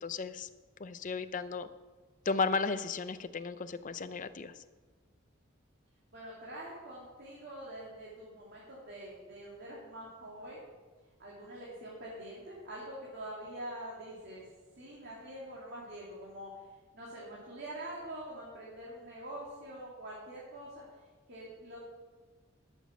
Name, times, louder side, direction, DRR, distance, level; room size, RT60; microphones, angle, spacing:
voice 1, 0.0-0.5 0.8-1.7 2.3-4.5, left 4 dB, 40° left, 11 dB, 0.5 m, -34 dB
voice 2, 6.1-10.6 11.2-14.5 14.8-20.8 21.3-21.8, right 1 dB, 55° right, -6 dB, 2.6 m, -45 dB
12.5 x 7.2 x 6.1 m, 1.4 s
head